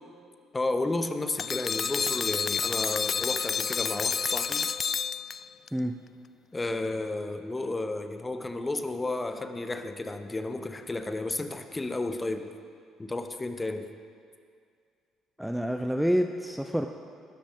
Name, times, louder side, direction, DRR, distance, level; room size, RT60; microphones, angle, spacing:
voice 1, 0.5-4.7 6.5-12.5 13.0-13.9, left 2 dB, 20° left, 8 dB, 1.0 m, -32 dB
sound 1, 1.4-5.7, left 6 dB, 40° left, 0.3 m, -29 dB
voice 2, 15.4-16.9, equal, ahead, 6 dB, 0.7 m, -27 dB
18.5 x 13.5 x 3.7 m, 2.2 s
figure-of-eight pair, 50°, 0 cm